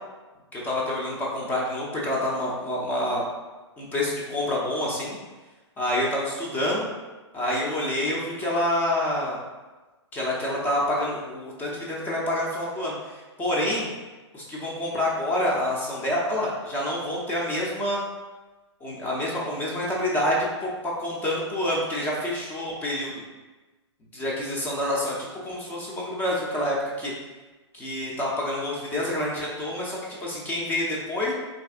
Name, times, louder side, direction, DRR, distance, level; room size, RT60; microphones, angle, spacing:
voice 1, 0.5-3.3 3.8-5.2 5.8-6.9 7.3-9.4 10.1-13.9 14.3-18.0 18.8-23.2 24.1-27.1 27.7-31.3, left 1 dB, 10° left, -4 dB, 0.5 m, -27 dB
3.9 x 2.5 x 2.4 m, 1.2 s
figure-of-eight pair, 120°, 15 cm